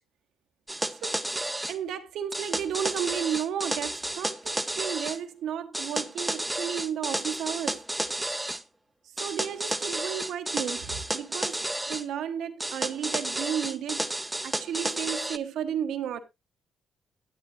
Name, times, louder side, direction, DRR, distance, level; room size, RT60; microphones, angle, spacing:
sound 1, 0.7-1.8 2.3-5.2 5.7-8.6 9.2-12.0 12.6-15.4, right 1 dB, 10° right, 0.7 m, -32 dB
voice 1, 1.7-7.8 9.2-14.1 14.4-16.2, right 9 dB, 75° right, 1.1 m, -33 dB
11.5 x 10.0 x 2.6 m
cardioid pair, 90°, 0 cm